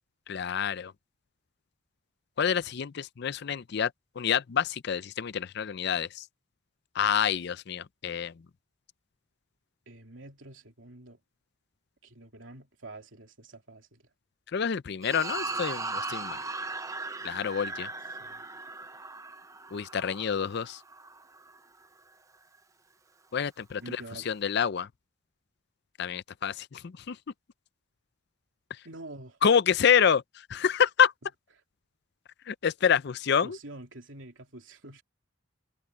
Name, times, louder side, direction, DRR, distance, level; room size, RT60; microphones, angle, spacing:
voice 1, 0.3-0.9 2.4-3.9 4.2-6.2 7.0-8.3 14.5-16.4 17.2-17.9 19.7-20.8 23.3-24.9 26.0-27.2 29.4-30.2 30.5-31.1 32.5-33.6, left 7 dB, 55° left, 0.5 m, -27 dB
voice 2, 9.9-11.2 12.0-14.0 18.2-18.4 23.8-24.3 28.8-29.4 33.4-35.0, right 2 dB, 70° right, 3.3 m, -46 dB
sound 1, 15.0-21.6, right 3 dB, 15° right, 0.7 m, -38 dB
head